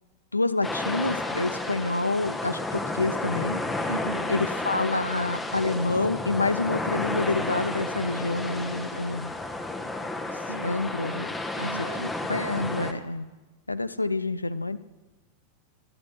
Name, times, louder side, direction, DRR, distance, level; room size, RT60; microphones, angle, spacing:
voice 1, 0.3-3.6 4.3-9.3 10.6-11.3 11.6-11.7 12.0-13.3 13.7-14.8, left 2 dB, 80° left, 15 dB, 0.3 m, -28 dB
sound 1, 0.6-12.9, left 2 dB, 10° left, 0.9 m, -31 dB
voice 2, 3.9-4.4 10.3-10.8 11.6-12.1, right 2 dB, 85° right, 6 dB, 0.5 m, -36 dB
15.0 x 11.0 x 3.2 m, 1.2 s
figure-of-eight pair, 90°, 0 cm